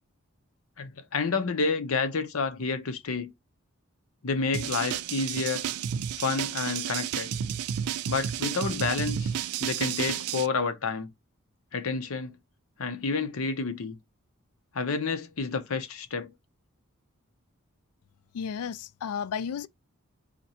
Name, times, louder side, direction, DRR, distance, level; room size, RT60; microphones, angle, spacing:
voice 1, 0.8-3.3 4.2-5.7 6.2-7.3 8.1-9.3 9.6-11.1 11.7-12.4 12.8-14.0 14.7-16.3, left 4 dB, 70° left, 0.7 m, -29 dB
sound 1, 4.5-10.5, right 9 dB, 80° right, 0.4 m, -31 dB
voice 2, 18.3-19.7, left 7 dB, 90° left, 0.4 m, -33 dB
4.2 x 2.9 x 4.2 m
head